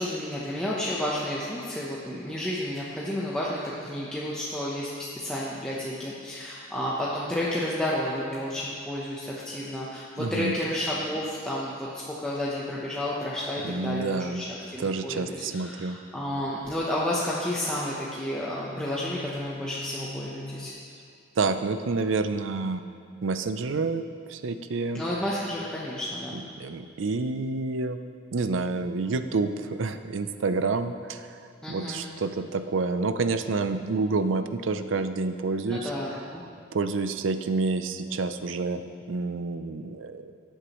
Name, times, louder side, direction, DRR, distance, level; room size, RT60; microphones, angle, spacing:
voice 1, 0.0-14.4 14.7-20.7 24.9-26.3 31.6-32.1 35.6-36.4, left 1 dB, 5° left, -7 dB, 0.8 m, -31 dB
voice 2, 10.2-10.6 13.6-14.4 14.8-16.0 21.4-22.9 23.2-24.0 24.3-25.0 26.3-28.0 28.3-31.4 31.7-35.9 36.7-40.3, right 3 dB, 75° right, 10 dB, 0.5 m, -28 dB
sound 1, 15.7-16.8 18.2-20.7, left 1 dB, 25° left, 0.4 m, -42 dB
14.5 x 8.0 x 3.1 m, 2.4 s
head